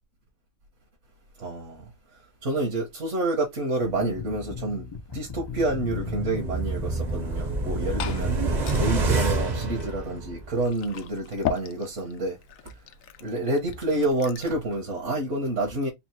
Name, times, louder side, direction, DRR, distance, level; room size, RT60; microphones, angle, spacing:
voice 1, 1.4-1.8 2.4-4.8 5.1-8.4 8.8-12.4 13.2-15.9, right 2 dB, 65° right, 1.5 m, -28 dB
sound 1, 3.8-9.8, left 4 dB, 45° left, 0.3 m, -38 dB
sound 2, 5.4-10.7 11.0-11.1, right 3 dB, 40° right, 0.8 m, -28 dB
Liquid, 7.5-14.6, left 10 dB, 80° left, 1.0 m, -39 dB
4.3 x 2.1 x 4.3 m
omnidirectional pair, 1.4 m